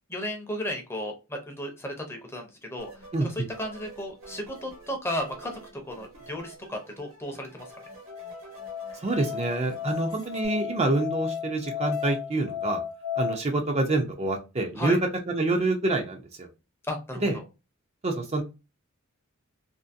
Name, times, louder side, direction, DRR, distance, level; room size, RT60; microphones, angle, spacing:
voice 1, 0.1-2.9 3.2-7.6 14.8-15.0 16.8-17.4, left 1 dB, 10° left, 3 dB, 0.6 m, -34 dB
sound 1, 2.8-10.5, right 2 dB, 80° right, 1.2 m, -48 dB
Musical instrument, 7.7-13.3, left 9 dB, 75° left, 0.5 m, -34 dB
voice 2, 8.9-12.8 13.2-15.0 15.3-16.5 17.2-17.4 18.0-18.4, right 2 dB, 30° right, 2 dB, 0.5 m, -27 dB
2.6 x 2.6 x 2.5 m, 0.28 s
head